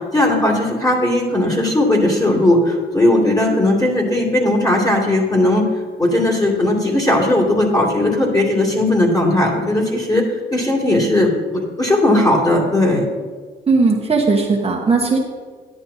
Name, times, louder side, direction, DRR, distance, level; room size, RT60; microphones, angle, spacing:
voice 1, 0.1-5.7 6.0-10.2 10.5-13.0, left 1 dB, 20° left, -3 dB, 2.5 m, -17 dB
voice 2, 13.7-15.2, right 4 dB, 30° right, -2 dB, 1.1 m, -17 dB
10.5 x 8.7 x 2.7 m, 1.5 s
cardioid pair, 80°, 21 cm